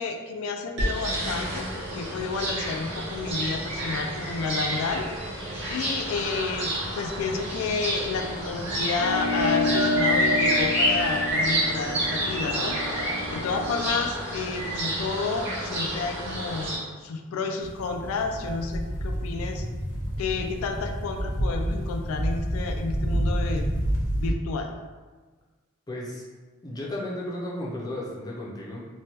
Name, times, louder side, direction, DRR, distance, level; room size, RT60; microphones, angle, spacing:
voice 1, 0.0-5.1 5.7-16.7 17.0-19.6 20.2-23.7 24.2-24.7, left 4 dB, 85° left, 5 dB, 0.3 m, -31 dB
sound 1, 0.8-16.8, equal, 55° right, 0.9 m, -29 dB
sound 2, 9.0-13.8, left 2 dB, 90° right, 0.6 m, -29 dB
sound 3, 17.6-24.3, equal, 60° left, 0.7 m, -29 dB
voice 2, 25.9-26.2 26.6-28.9, left 1 dB, 20° left, -5 dB, 0.5 m, -34 dB
3.1 x 2.2 x 2.8 m, 1.3 s
head